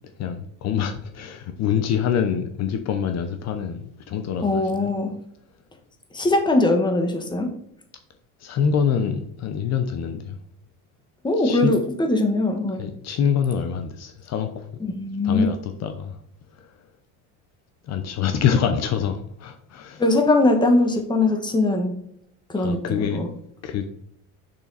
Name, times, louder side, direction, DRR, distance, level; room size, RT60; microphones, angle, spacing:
voice 1, 0.2-4.9 8.4-10.4 11.4-11.8 12.8-14.7 15.2-16.2 16.5-16.8 17.8-20.0 22.6-23.3 23.6-23.8, left 7 dB, 50° left, 0.9 m, -25 dB
voice 2, 4.4-5.1 6.1-7.5 11.2-12.8 14.8-15.5 20.0-21.9 22.5-23.3, left 2 dB, 15° left, 1.4 m, -21 dB
6.8 x 6.0 x 4.1 m
cardioid pair, 130°, 34 cm